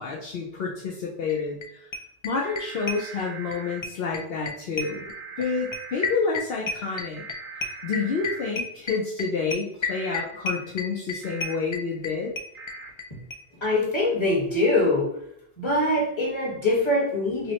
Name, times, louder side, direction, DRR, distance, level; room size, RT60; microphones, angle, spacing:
voice 1, 0.0-1.6 2.2-5.1 5.4-7.2 7.8-12.3, left 4 dB, 70° left, -2 dB, 0.8 m, -29 dB
sound 1, 1.3-1.4 1.6-1.7 1.9-3.6 3.8-13.1 13.3-13.4 13.6-13.7 13.9-14.0, left 3 dB, 50° left, 0.3 m, -31 dB
sound 2, 2.4-3.8 4.8-6.2 7.1-8.5 9.9-10.2 11.2-11.6 12.5-12.9, right 5 dB, 55° right, 0.8 m, -41 dB
voice 2, 13.6-15.3 15.6-17.5, left 2 dB, 25° left, -4 dB, 1.3 m, -23 dB
5.6 x 2.1 x 2.8 m, 0.71 s
omnidirectional pair, 1.1 m